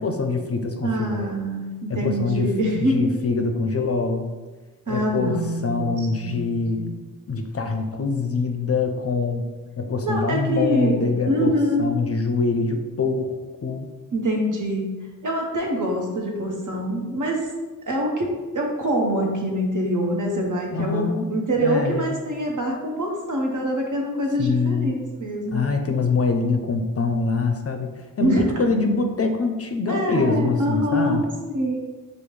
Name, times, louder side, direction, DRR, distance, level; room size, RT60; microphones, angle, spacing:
voice 1, 0.0-1.3 1.9-4.3 4.9-6.8 7.3-9.5 9.8-13.4 13.6-13.9 20.7-21.3 21.6-22.2 24.4-25.0 25.5-31.3, left 4 dB, 45° left, 5 dB, 0.4 m, -24 dB
voice 2, 0.8-3.2 4.9-6.4 6.7-6.9 10.0-11.9 14.1-15.0 15.2-17.5 17.9-24.9 25.2-25.6 28.2-28.4 29.9-31.2 31.5-31.8, equal, 60° right, 0 dB, 0.8 m, -25 dB
5.0 x 2.0 x 3.1 m, 1.3 s
cardioid pair, 45°, 35 cm